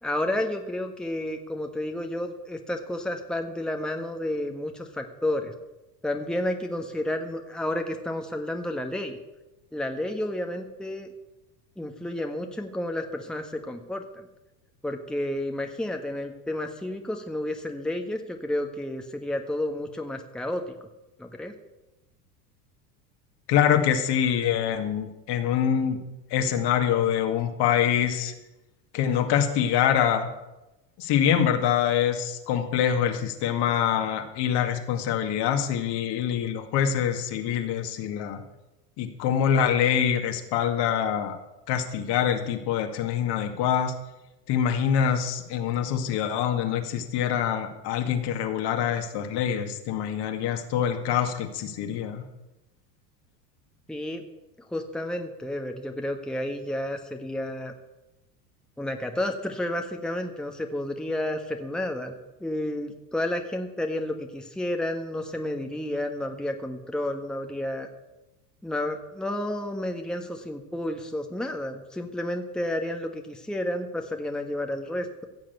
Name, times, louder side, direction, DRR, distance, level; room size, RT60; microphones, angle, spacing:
voice 1, 0.0-5.5 6.0-9.2 9.7-11.1 11.8-14.3 14.8-20.7 21.2-21.5 53.9-54.2 54.7-57.7 58.8-62.1 62.4-67.9 68.6-75.3, left 1 dB, ahead, 4 dB, 1.4 m, -31 dB
voice 2, 23.5-26.0 26.3-28.3 28.9-30.3 31.0-38.4 39.0-41.4 41.7-43.9 44.5-52.2, left 9 dB, 50° left, 5 dB, 2.2 m, -25 dB
15.5 x 7.3 x 8.2 m, 0.99 s
hypercardioid pair, 85°, 50 cm